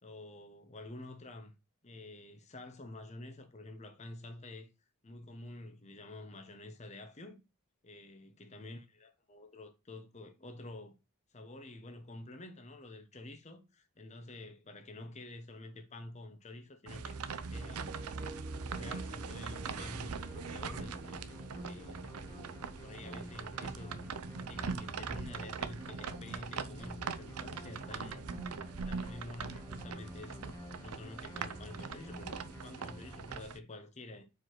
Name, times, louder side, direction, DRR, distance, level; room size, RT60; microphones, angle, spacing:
voice 1, 0.0-1.5 1.8-4.7 5.0-7.4 7.8-11.0 11.3-17.9 18.6-22.3 22.8-24.0 24.4-28.3 28.6-34.2, left 2 dB, 30° left, 0.9 m, -49 dB
sound 1, 16.9-33.6, right 5 dB, 85° right, 0.6 m, -42 dB
sound 2, 17.5-22.8, right 2 dB, 15° right, 0.3 m, -51 dB
sound 3, 19.6-33.4, left 1 dB, 15° left, 1.1 m, -50 dB
4.8 x 4.7 x 5.9 m
head